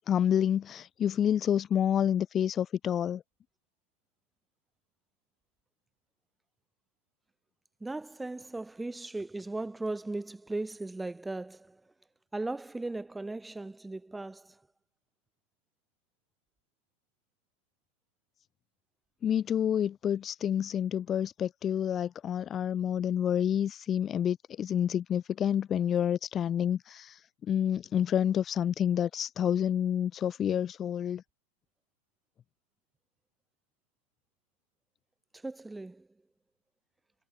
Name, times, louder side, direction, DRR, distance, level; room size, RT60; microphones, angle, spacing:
voice 1, 0.1-3.2 19.2-31.2, left 9 dB, 25° left, 0.3 m, -28 dB
voice 2, 7.8-11.8 12.3-14.6 35.3-36.1, right 2 dB, 5° right, 1.2 m, -37 dB
figure-of-eight pair, 105°, 0 cm